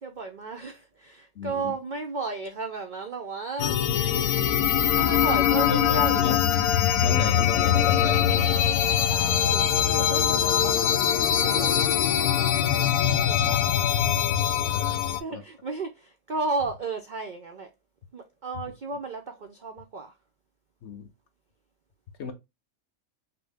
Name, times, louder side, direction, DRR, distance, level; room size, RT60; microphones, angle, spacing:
voice 1, 0.0-3.9 4.9-6.2 9.0-10.9 11.4-13.6 14.9-17.7 18.1-20.1 22.2-22.3, right 3 dB, 75° right, 0.4 m, -34 dB
voice 2, 1.4-1.7 5.6-6.4 7.0-8.6 11.5-12.0 13.2-13.5 14.7-15.0 15.3-15.4 20.8-21.1 22.2-22.3, left 6 dB, 60° left, 0.8 m, -33 dB
sound 1, 3.6-15.2, left 9 dB, 85° left, 1.1 m, -22 dB
5.9 x 2.0 x 3.3 m
omnidirectional pair, 1.5 m